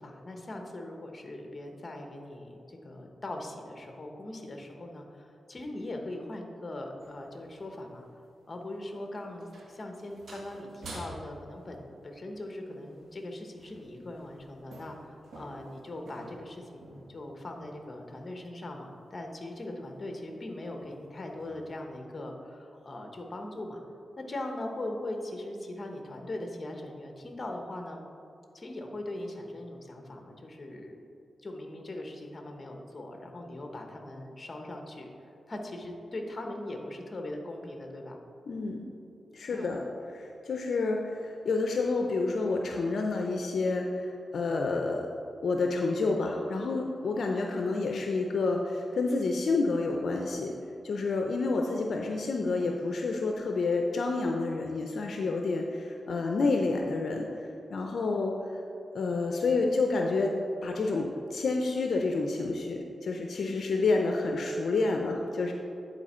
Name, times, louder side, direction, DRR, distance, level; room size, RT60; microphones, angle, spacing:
voice 1, 0.0-8.1 8.5-23.8 24.2-28.0 28.5-31.0 31.4-38.2 39.5-39.7, left 1 dB, 40° left, 3 dB, 1.0 m, -40 dB
sound 1, 7.0-7.9 8.6-8.9 9.2-11.7 12.9-13.2 13.6-17.8 18.0-18.4 18.7-18.9 19.3-19.5 20.0-20.3 20.6-21.0 21.3-21.6, right 1 dB, 75° right, 1.4 m, -50 dB
voice 2, 38.5-38.8 39.3-39.9 40.1-45.1 45.4-50.5 50.8-58.3 58.9-60.3 60.6-65.5, left 3 dB, 70° left, 2 dB, 0.5 m, -29 dB
9.9 x 4.3 x 4.3 m, 2.7 s
cardioid pair, 75°, 0 cm